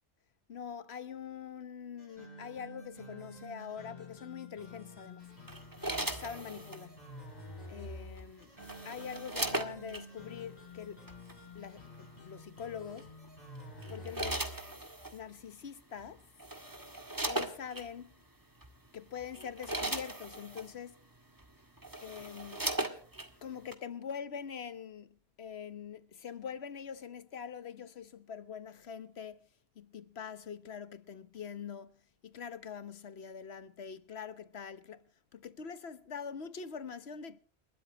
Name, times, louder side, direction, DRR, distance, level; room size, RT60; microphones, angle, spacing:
voice 1, 0.5-5.3 6.0-7.1 7.7-8.5 8.8-11.1 11.5-13.1 13.9-14.5 15.1-16.2 17.3-18.1 18.9-21.0 22.0-22.7 23.4-29.5 29.7-35.0 35.3-37.4, left 7 dB, 90° left, 1.3 m, -44 dB
sound 1, 2.0-14.8, left 1 dB, 40° left, 5.1 m, -49 dB
sound 2, 5.5-6.9 8.2-10.0 11.1-11.3 13.0-13.3 13.8-15.2 16.0-16.1 16.4-17.9 18.6-18.8 19.2-20.7 21.4-21.5 21.8-23.3 23.7-23.8, right 2 dB, 20° right, 2.0 m, -38 dB
29.5 x 13.0 x 3.0 m
omnidirectional pair, 1.0 m